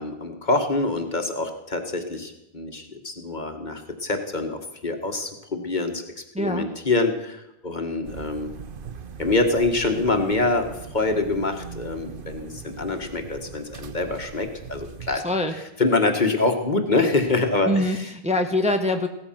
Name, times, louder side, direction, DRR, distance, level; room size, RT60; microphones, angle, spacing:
voice 1, 0.0-8.5 9.2-15.2 15.8-18.1, left 3 dB, 45° left, 5 dB, 1.9 m, -25 dB
voice 2, 6.3-6.7 15.1-15.5 17.6-18.0 18.2-19.1, left 1 dB, 5° right, 5 dB, 1.2 m, -23 dB
sound 1, 8.0-15.2, right 6 dB, 55° right, 1.1 m, -40 dB
17.0 x 14.0 x 5.9 m, 0.87 s
omnidirectional pair, 1.1 m